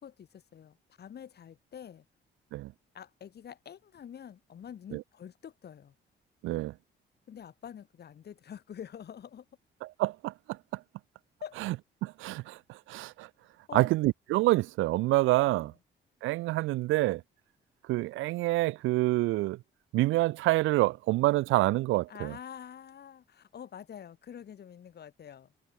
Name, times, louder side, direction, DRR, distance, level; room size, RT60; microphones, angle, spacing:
voice 1, 0.0-2.0 2.9-5.9 7.3-9.5 11.4-11.6 13.7-13.9 15.5-15.8 22.1-25.5, left 8 dB, 55° left, 2.4 m, -46 dB
voice 2, 6.4-6.7 10.0-10.3 11.7-11.8 12.0-13.3 13.7-15.7 16.2-17.2 17.9-19.6 19.9-22.3, right 18 dB, 90° right, 0.5 m, -27 dB
cardioid pair, 90°, 20 cm